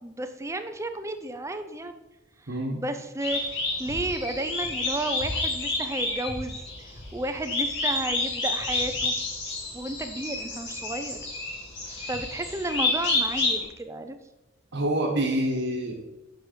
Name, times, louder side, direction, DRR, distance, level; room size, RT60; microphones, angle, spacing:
voice 1, 0.0-2.0 2.7-6.7 7.1-9.1 9.7-11.2 11.9-14.2, right 2 dB, 15° right, 8 dB, 0.5 m, -32 dB
voice 2, 2.5-2.8 14.7-16.0, right 1 dB, 60° right, -3 dB, 1.3 m, -26 dB
sound 1, 3.2-13.6, left 2 dB, 60° left, 2.3 m, -29 dB
6.5 x 6.4 x 5.0 m, 1.0 s
head